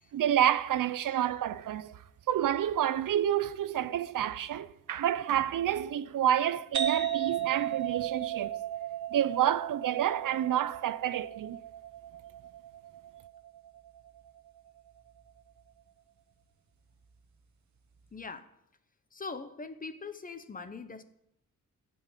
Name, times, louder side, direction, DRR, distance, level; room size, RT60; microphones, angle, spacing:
voice 1, 0.1-2.0 2.3-8.6 9.1-11.6, right 11 dB, 75° right, 0.7 m, -29 dB
sound 1, 6.7-14.2, right 10 dB, 60° right, 1.2 m, -35 dB
voice 2, 18.1-18.5 19.1-21.0, left 4 dB, 25° left, 0.8 m, -42 dB
15.5 x 5.5 x 9.0 m
wide cardioid pair, 165°, 32 cm